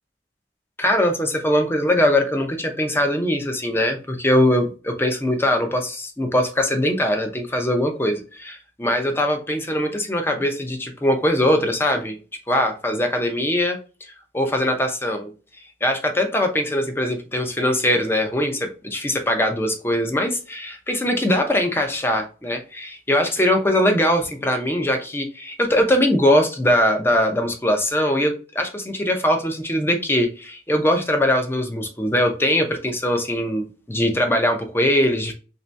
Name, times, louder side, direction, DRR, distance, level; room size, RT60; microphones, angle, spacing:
voice 1, 0.8-12.2 12.5-13.8 14.3-15.3 15.8-35.3, left 1 dB, 15° left, 4 dB, 0.7 m, -21 dB
3.5 x 2.8 x 3.3 m, 0.35 s
head